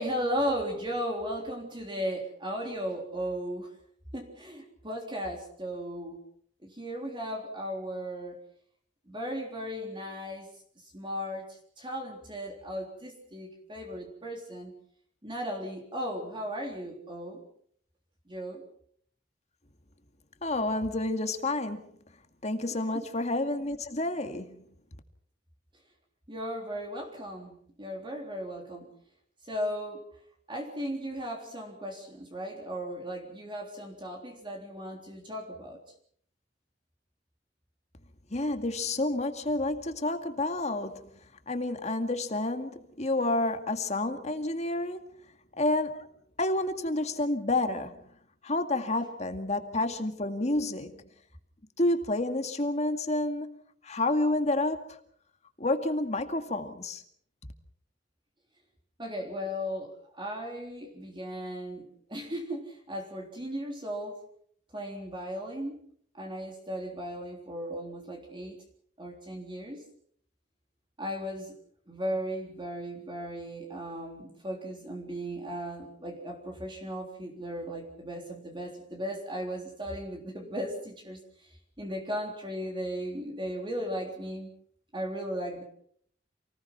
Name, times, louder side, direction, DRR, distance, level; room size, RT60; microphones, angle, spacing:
voice 1, 0.0-3.7 4.1-6.2 6.6-8.4 9.1-10.5 10.8-14.7 15.2-17.4 18.3-18.6 26.3-28.9 29.4-30.0 30.5-35.8 59.0-64.2 64.7-65.8 66.1-68.6 69.0-69.8 71.0-71.6 71.9-84.5 84.9-85.6, equal, 25° right, 1 dB, 3.6 m, -36 dB
voice 2, 20.4-21.8 22.4-24.6 38.3-41.0 41.5-45.0 45.6-46.1 46.4-48.0 48.4-51.0 51.8-53.6 53.8-55.0 55.6-57.0 57.4-57.5, left 2 dB, 40° left, 7 dB, 2.1 m, -29 dB
28.5 x 19.5 x 6.0 m, 0.63 s
head